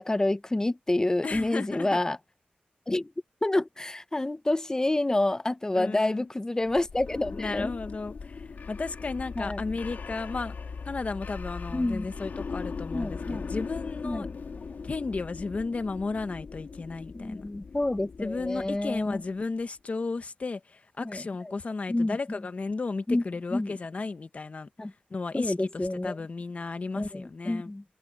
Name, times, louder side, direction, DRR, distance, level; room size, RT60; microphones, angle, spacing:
voice 1, 0.0-2.2 2.9-3.1 3.4-7.7 9.4-9.6 11.7-12.0 12.9-13.5 14.0-14.3 17.1-19.2 21.0-21.2 21.9-22.2 23.1-23.2 23.5-23.7 24.8-24.9 25.3-26.2 27.0-27.8, left 2 dB, 20° left, 0.6 m, -28 dB
voice 2, 1.2-2.0 5.7-6.3 7.3-10.5 10.8-14.3 14.8-17.4 18.2-24.7 25.1-27.7, left 3 dB, 45° left, 1.2 m, -34 dB
sound 1, 6.7-19.4, left 5 dB, 75° left, 2.4 m, -39 dB
wide cardioid pair, 100°, 3 cm